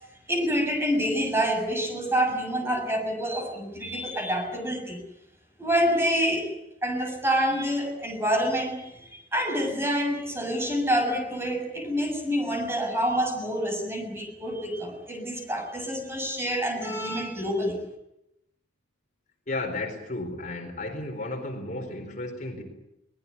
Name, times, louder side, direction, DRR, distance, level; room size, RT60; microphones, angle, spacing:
voice 1, 0.3-5.0 5.6-6.5 6.8-17.8, equal, 15° right, 4 dB, 6.6 m, -27 dB
voice 2, 19.5-22.6, left 2 dB, 45° left, 4 dB, 4.3 m, -33 dB
23.5 x 20.0 x 9.7 m, 0.85 s
head